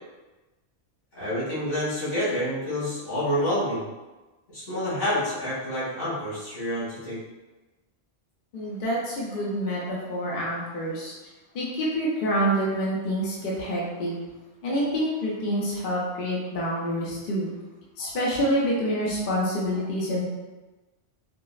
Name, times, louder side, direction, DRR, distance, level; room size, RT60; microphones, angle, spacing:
voice 1, 1.1-3.9 4.5-7.2, equal, 85° left, -11 dB, 2.1 m, -28 dB
voice 2, 8.5-11.1 11.5-14.1 14.6-17.5 18.0-20.2, equal, 55° left, -5 dB, 0.8 m, -27 dB
4.6 x 2.0 x 2.3 m, 1.1 s
omnidirectional pair, 1.2 m